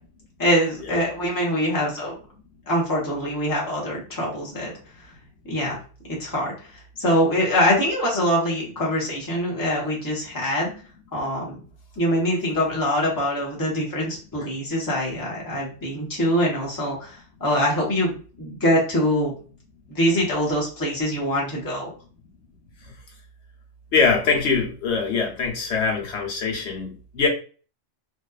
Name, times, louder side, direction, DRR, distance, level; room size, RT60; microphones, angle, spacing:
voice 1, 0.4-2.2 2.7-4.7 5.5-5.8 6.1-6.5 7.0-10.7 11.1-11.6 12.0-19.3 19.9-21.9, equal, 20° left, -4 dB, 0.8 m, -24 dB
voice 2, 23.9-27.3, left 5 dB, 70° left, 0 dB, 1.0 m, -23 dB
2.6 x 2.3 x 2.3 m, 0.39 s
omnidirectional pair, 1.3 m